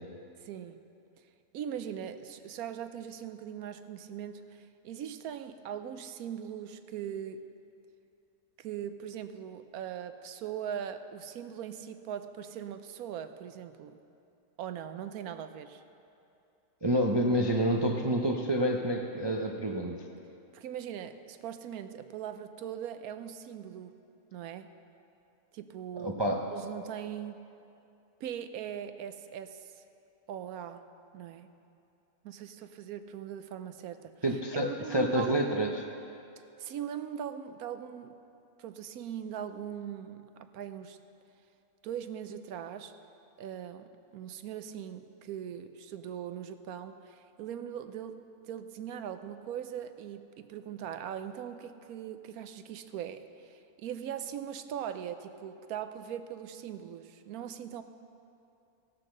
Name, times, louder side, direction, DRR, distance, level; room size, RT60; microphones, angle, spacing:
voice 1, 0.4-0.8 1.5-7.5 8.6-14.0 14.6-15.8 20.5-23.9 24.3-24.7 25.5-26.2 26.5-27.4 28.2-29.7 30.3-30.8 31.1-31.5 32.2-34.1 34.8-35.3 36.6-38.2 38.6-41.0 41.8-42.9 43.4-48.2 48.4-57.8, right 9 dB, 85° right, 10 dB, 1.1 m, -40 dB
voice 2, 16.8-20.0 26.0-26.5 34.2-35.8, right 1 dB, 40° right, 1 dB, 0.3 m, -28 dB
16.0 x 6.3 x 6.5 m, 2.7 s
omnidirectional pair, 1.5 m